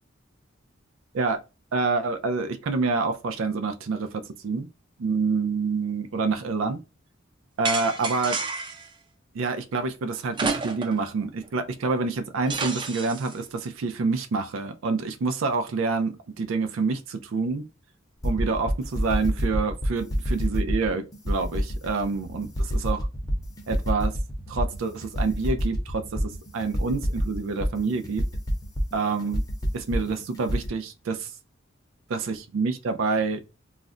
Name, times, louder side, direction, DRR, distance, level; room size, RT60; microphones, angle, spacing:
voice 1, 1.7-4.7 5.0-6.8 7.6-8.4 9.3-17.6 18.2-23.1 23.7-24.1 24.5-28.2 28.9-29.4 29.7-31.3 32.1-33.4, right 4 dB, 90° right, 0.4 m, -27 dB
sound 1, 7.6-8.9 10.3-11.1 11.4-11.5 12.5-13.3, right 4 dB, 25° right, 0.4 m, -30 dB
sound 2, 18.2-30.7, equal, 20° left, 0.6 m, -27 dB
2.4 x 2.1 x 3.6 m
head